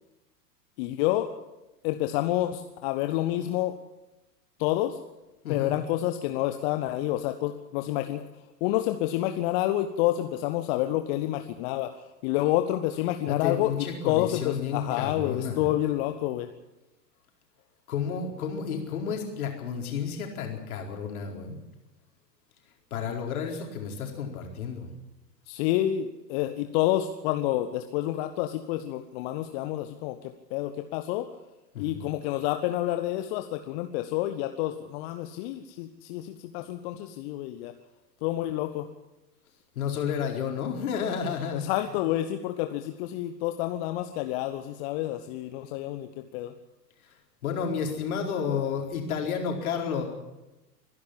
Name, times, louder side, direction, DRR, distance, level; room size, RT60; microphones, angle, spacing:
voice 1, 0.8-1.3 1.8-3.8 4.6-5.0 5.5-8.3 8.6-16.5 25.5-30.2 30.5-31.3 31.8-37.7 38.2-38.9 41.5-46.5, left 14 dB, 40° left, 7 dB, 1.2 m, -28 dB
voice 2, 13.3-15.7 17.9-21.6 22.9-24.9 31.7-32.1 39.8-41.6 47.4-50.1, left 7 dB, 60° left, 2 dB, 4.5 m, -31 dB
24.5 x 11.0 x 10.0 m, 1.0 s
figure-of-eight pair, 95°, 49 cm